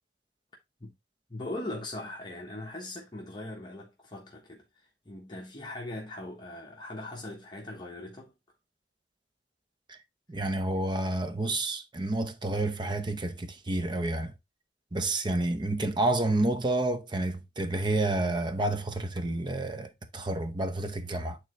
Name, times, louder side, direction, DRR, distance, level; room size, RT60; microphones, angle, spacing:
voice 1, 1.3-8.3, left 1 dB, 25° left, 1.2 m, -40 dB
voice 2, 10.3-14.3 14.9-21.4, right 2 dB, 25° right, 0.7 m, -29 dB
8.9 x 3.9 x 3.1 m
head